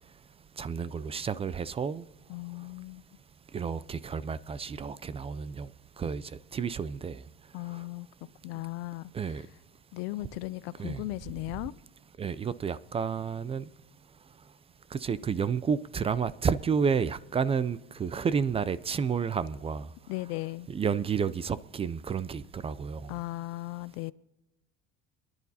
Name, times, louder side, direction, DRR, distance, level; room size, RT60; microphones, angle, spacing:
voice 1, 0.6-2.0 3.5-5.7 6.0-6.2 6.5-7.2 9.1-9.4 10.8-11.0 12.2-13.6 14.9-19.9 20.7-23.1, right 6 dB, 20° right, 0.4 m, -30 dB
voice 2, 2.3-3.1 7.5-8.1 8.4-9.4 9.9-11.7 20.1-20.7 23.1-24.1, left 19 dB, 85° left, 0.6 m, -37 dB
27.0 x 11.0 x 2.8 m
cardioid pair, 125°, 31 cm